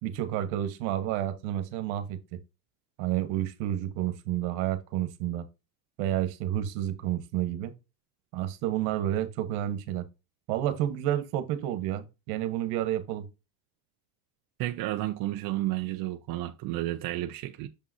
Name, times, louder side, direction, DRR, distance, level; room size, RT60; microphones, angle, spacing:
voice 1, 0.0-2.4 3.0-5.4 6.0-7.7 8.3-10.0 10.5-13.3, right 12 dB, 65° right, 1.5 m, -30 dB
voice 2, 14.6-17.7, right 16 dB, 45° right, 0.7 m, -31 dB
6.9 x 5.7 x 2.7 m
supercardioid pair, 120°, 50 cm